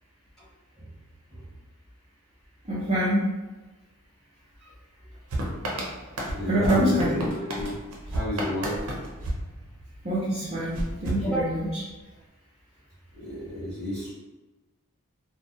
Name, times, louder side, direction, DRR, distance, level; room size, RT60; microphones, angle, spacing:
voice 1, 2.7-3.2 6.5-7.2 10.0-11.8, equal, 30° right, -9 dB, 0.5 m, -25 dB
sound 1, 5.3-10.2 10.7-12.0, right 1 dB, 85° right, 0.6 m, -32 dB
voice 2, 6.3-7.8 8.1-8.9 11.2-11.5 13.1-14.1, equal, ahead, -13 dB, 1.3 m, -31 dB
2.5 x 2.1 x 2.5 m, 1.2 s
head